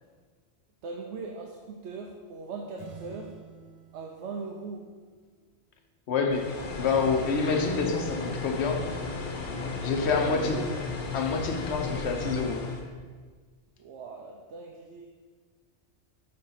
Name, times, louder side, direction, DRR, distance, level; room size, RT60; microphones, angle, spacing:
voice 1, 0.8-3.4 3.9-4.9 8.2-8.4 10.1-10.6 13.8-15.1, right 4 dB, 85° right, 1 dB, 0.9 m, -40 dB
sound 1, 2.8-5.4, right 3 dB, 35° right, 0.5 m, -49 dB
voice 2, 6.1-8.8 9.8-10.8 11.1-12.7, left 4 dB, 75° left, 4 dB, 1.0 m, -27 dB
sound 2, 6.3-12.8, left 3 dB, 50° left, 0.9 m, -34 dB
6.4 x 3.8 x 5.7 m, 1.5 s
omnidirectional pair, 1.2 m